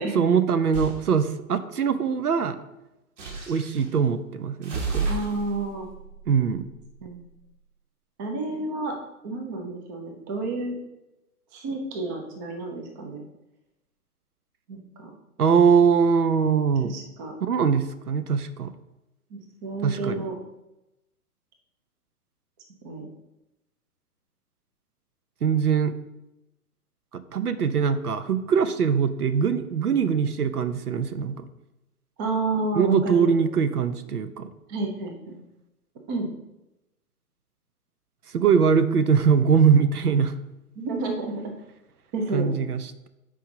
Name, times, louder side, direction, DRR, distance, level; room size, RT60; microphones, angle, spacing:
voice 1, 0.1-2.6 3.5-5.1 6.3-6.7 15.4-17.0 17.4-18.7 19.8-20.3 25.4-25.9 27.1-31.4 32.7-34.5 38.3-40.3 42.3-43.1, right 6 dB, 75° right, 12 dB, 0.8 m, -22 dB
sound 1, 0.7-1.0 3.2-3.9 4.6-7.2, right 4 dB, 50° right, 2.1 m, -32 dB
voice 2, 5.1-5.9 7.0-7.2 8.2-9.0 9.2-10.8 11.5-13.2 14.7-15.1 16.9-17.4 19.3-20.3 22.8-23.1 32.2-33.4 34.7-35.4 36.1-36.3 40.8-41.5 42.1-42.6, right 3 dB, 15° right, 3 dB, 0.5 m, -30 dB
7.7 x 4.8 x 3.9 m, 0.94 s
figure-of-eight pair, 120°, 46 cm